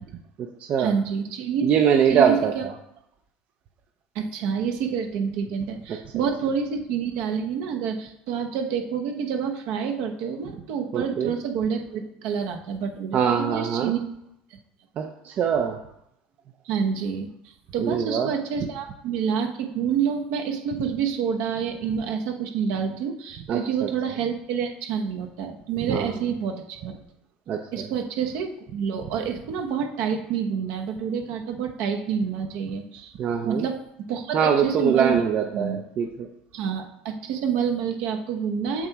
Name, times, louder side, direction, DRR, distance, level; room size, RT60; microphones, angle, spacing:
voice 1, 0.8-1.7 2.1-2.7 4.1-14.0 16.7-17.3 17.7-26.9 27.7-33.1 33.4-34.4 34.6-35.2 35.5-35.8 36.5-38.9, right 7 dB, 70° right, 4 dB, 1.0 m, -28 dB
voice 2, 1.6-2.7 5.9-6.2 10.9-11.3 13.1-13.9 15.0-15.8 17.8-18.3 23.5-23.9 25.8-26.1 27.5-27.9 33.2-33.7 34.3-36.3, right 7 dB, 45° right, 4 dB, 0.5 m, -23 dB
7.3 x 3.0 x 4.6 m, 0.79 s
supercardioid pair, 105°, 3 cm